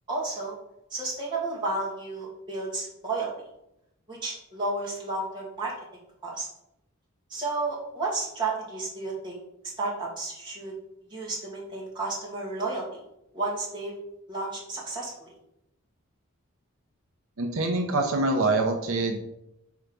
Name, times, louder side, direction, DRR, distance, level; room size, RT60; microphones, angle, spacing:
voice 1, 0.1-0.6 0.9-3.3 4.1-5.7 6.2-6.5 7.3-9.4 9.8-10.7 11.1-13.0 13.3-13.9 14.3-15.3, right 3 dB, 20° right, -5 dB, 2.0 m, -32 dB
voice 2, 17.4-19.2, right 2 dB, 80° right, 3 dB, 0.8 m, -25 dB
4.7 x 4.6 x 5.3 m, 0.84 s
head